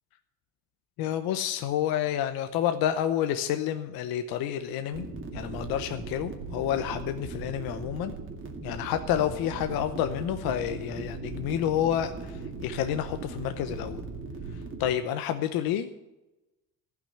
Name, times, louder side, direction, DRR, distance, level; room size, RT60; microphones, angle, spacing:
voice 1, 1.0-5.1 5.3-8.1 8.6-14.0 14.8-16.0, left 10 dB, 75° left, 8 dB, 0.9 m, -29 dB
sound 1, 4.9-14.9, right 4 dB, 35° right, 2.1 m, -39 dB
14.5 x 6.1 x 9.9 m, 0.99 s
cardioid pair, 120°, 36 cm